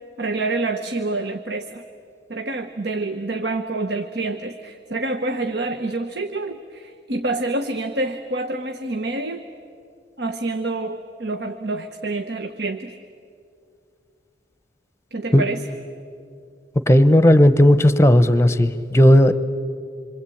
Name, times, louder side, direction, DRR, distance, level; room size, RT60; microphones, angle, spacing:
voice 1, 0.2-1.8 2.3-9.4 10.2-12.9 15.1-15.7, right 2 dB, 60° right, 7 dB, 1.1 m, -27 dB
voice 2, 16.9-19.3, left 1 dB, 15° left, 12 dB, 0.9 m, -14 dB
27.5 x 24.5 x 8.6 m, 2.4 s
head